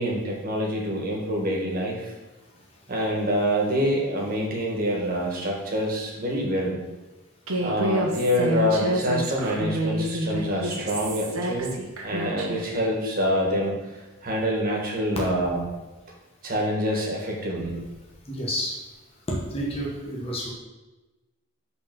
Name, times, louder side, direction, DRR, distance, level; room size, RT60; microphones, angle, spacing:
voice 1, 0.0-2.1 2.9-6.8 7.6-11.7 12.0-13.8 14.2-15.6 16.4-17.8, equal, 45° right, -2 dB, 1.6 m, -26 dB
Human voice, 7.5-12.7, equal, 85° right, 1.1 m, -28 dB
voice 2, 18.3-18.7 19.5-20.5, equal, 30° left, -3 dB, 1.2 m, -30 dB
5.5 x 4.2 x 6.0 m, 1.1 s
head